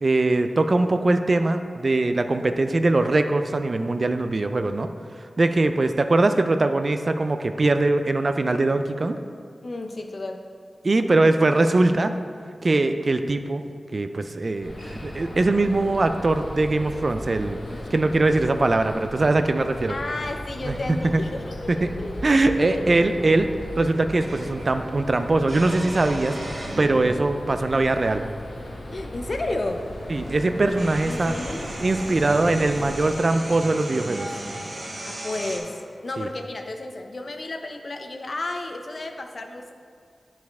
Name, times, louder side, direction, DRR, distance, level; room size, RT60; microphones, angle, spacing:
voice 1, 0.0-4.9 5.4-9.2 10.8-12.1 12.6-13.6 13.9-17.6 17.9-19.9 20.7-20.8 21.1-21.2 21.8-21.9 22.2-23.5 23.8-26.4 26.8-28.2 30.1-31.4 31.8-34.3 36.2-36.3, right 2 dB, 45° right, 8 dB, 0.3 m, -21 dB
voice 2, 9.6-10.4 17.7-17.8 19.9-22.2 22.6-22.9 28.9-29.9 31.0-31.7 35.0-39.7, left 2 dB, 50° left, 5 dB, 0.6 m, -32 dB
sound 1, 14.6-33.2, left 1 dB, 90° left, 1.1 m, -37 dB
sound 2, 24.2-24.7 25.4-27.3 28.2-28.3 29.8-29.9 30.2-35.6, right 1 dB, 80° right, 1.5 m, -35 dB
10.5 x 4.8 x 3.5 m, 2.2 s
wide cardioid pair, 105°, 0 cm